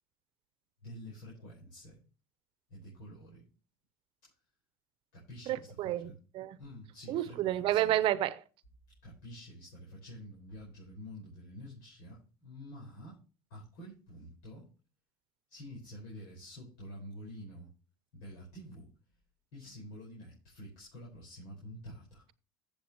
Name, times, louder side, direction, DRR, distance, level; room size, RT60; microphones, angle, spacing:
voice 1, 0.8-2.0 2.7-3.5 4.2-4.3 5.1-6.1 6.6-7.9 9.0-13.2 13.5-14.7 15.5-17.7 18.1-18.9 19.5-22.2, equal, 75° left, 5.1 m, -48 dB
voice 2, 5.5-6.6 7.1-8.4, right 13 dB, 55° right, 0.9 m, -30 dB
15.0 x 7.2 x 3.1 m
hypercardioid pair, 80°, 11 cm